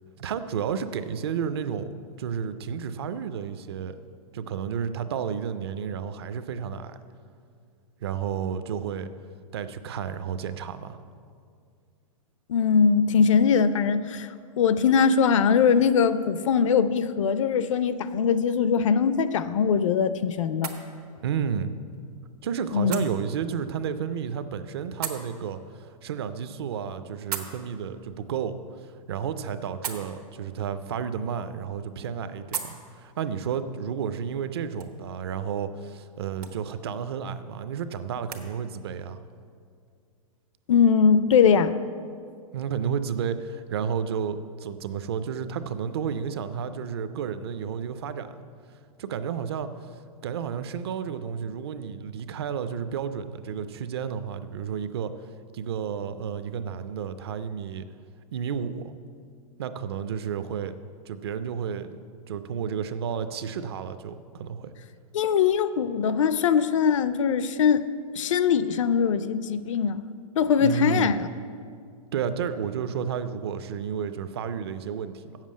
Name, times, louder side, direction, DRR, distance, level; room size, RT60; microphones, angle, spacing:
voice 1, 0.2-1.9 2.2-4.0 4.3-7.0 8.0-9.1 9.5-11.0 21.2-21.7 22.4-28.6 29.1-39.2 42.5-48.4 49.0-49.7 50.2-55.1 55.5-57.8 58.3-58.9 59.6-60.7 61.1-62.0 62.3-64.7 70.6-71.2 72.1-75.4, right 7 dB, 45° right, 11 dB, 0.4 m, -31 dB
voice 2, 12.5-14.3 14.6-20.7 22.7-23.0 40.7-41.7 65.1-67.8 68.1-70.0 70.4-71.3, left 6 dB, 55° left, 13 dB, 0.5 m, -21 dB
sound 1, 19.0-38.5, right 8 dB, 85° right, 1.3 m, -43 dB
8.0 x 7.4 x 7.4 m, 2.3 s
supercardioid pair, 175°, 19 cm